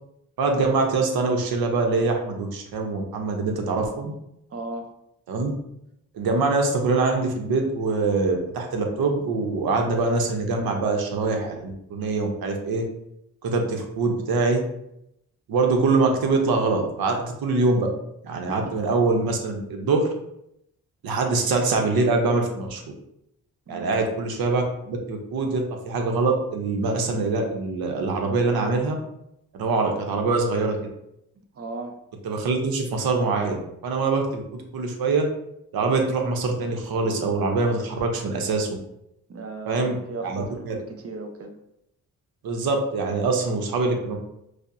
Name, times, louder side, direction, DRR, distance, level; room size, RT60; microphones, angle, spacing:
voice 1, 0.4-4.1 5.3-5.5 6.1-12.8 13.4-14.6 15.5-17.9 18.2-20.1 21.0-22.8 23.7-29.0 29.5-30.8 32.2-35.3 35.7-38.7 39.7-40.0 40.2-40.7 42.4-44.2, right 3 dB, 75° right, 3 dB, 0.8 m, -24 dB
voice 2, 4.5-4.9 18.5-18.6 23.7-24.1 31.6-32.0 39.3-41.6, right 3 dB, 40° right, 5 dB, 0.7 m, -36 dB
5.0 x 2.0 x 2.6 m, 0.80 s
cardioid pair, 65°, 36 cm